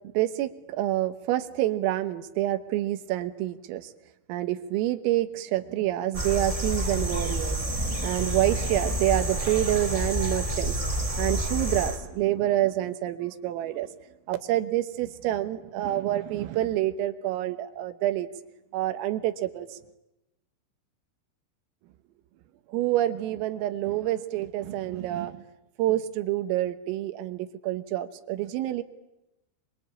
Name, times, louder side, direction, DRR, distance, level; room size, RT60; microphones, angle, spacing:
voice 1, 0.2-0.5 0.8-3.9 4.3-10.9 11.2-13.9 14.3-18.3 18.7-19.7 22.7-25.4 25.8-28.8, right 14 dB, 85° right, 10 dB, 3.9 m, -27 dB
sound 1, 6.1-12.0, equal, 15° right, 1.4 m, -29 dB
24.5 x 24.0 x 8.8 m, 0.90 s
omnidirectional pair, 5.9 m